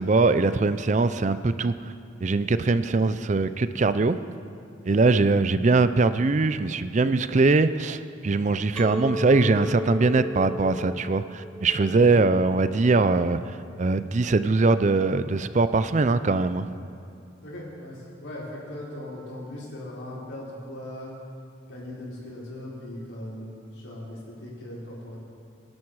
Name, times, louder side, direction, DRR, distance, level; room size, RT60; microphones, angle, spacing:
voice 1, 0.0-1.9 2.2-4.2 4.9-16.6, right 3 dB, 35° right, 12 dB, 0.4 m, -22 dB
Chink clink, 8.8-13.9, left 1 dB, 5° left, 0.9 m, -36 dB
voice 2, 17.4-21.1 21.7-25.2, left 1 dB, 70° left, -6 dB, 5.1 m, -39 dB
26.0 x 10.5 x 4.8 m, 2.5 s
head